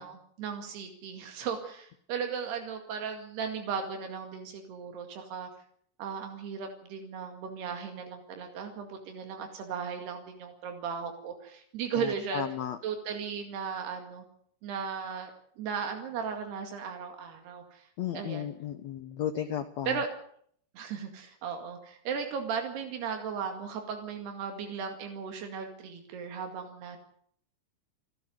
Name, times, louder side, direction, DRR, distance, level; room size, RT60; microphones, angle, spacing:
voice 1, 0.0-5.5 6.0-12.4 12.8-14.2 14.6-15.3 15.6-17.9 18.1-18.5 19.9-20.1 20.8-27.0, right 6 dB, 90° right, 4 dB, 4.3 m, -36 dB
voice 2, 11.9-12.8 18.0-20.0, left 10 dB, 75° left, 9 dB, 1.6 m, -34 dB
28.5 x 12.5 x 8.0 m, 0.64 s
omnidirectional pair, 4.5 m